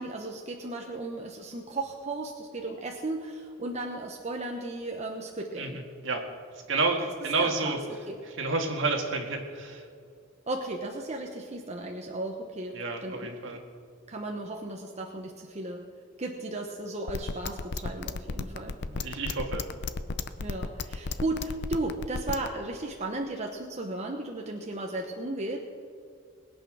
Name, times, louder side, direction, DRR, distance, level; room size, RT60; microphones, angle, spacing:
voice 1, 0.0-5.8 7.0-7.1 7.4-8.2 10.5-13.3 14.1-15.8 16.2-18.8 20.4-25.6, right 2 dB, 35° right, 2 dB, 0.9 m, -35 dB
voice 2, 6.7-7.8 8.4-9.8 12.7-13.6 18.9-19.6, right 3 dB, 65° right, 2 dB, 2.0 m, -29 dB
sound 1, 17.1-22.5, left 4 dB, 55° left, 0.6 m, -33 dB
20.5 x 8.5 x 6.2 m, 2.3 s
head